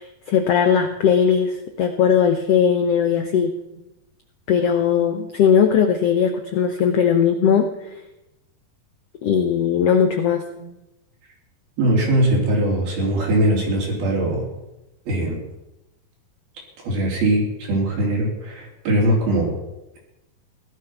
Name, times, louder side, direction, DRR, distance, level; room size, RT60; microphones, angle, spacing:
voice 1, 0.0-3.5 4.5-7.9 9.2-10.4, left 7 dB, 85° left, 6 dB, 1.3 m, -19 dB
voice 2, 3.0-3.5 4.8-5.3 7.1-7.6 9.7-10.2 10.6-10.7 11.8-14.5 15.1-15.4 16.8-19.6, right 1 dB, 85° right, -2 dB, 5.5 m, -22 dB
17.0 x 12.0 x 6.0 m, 0.94 s
omnidirectional pair, 4.2 m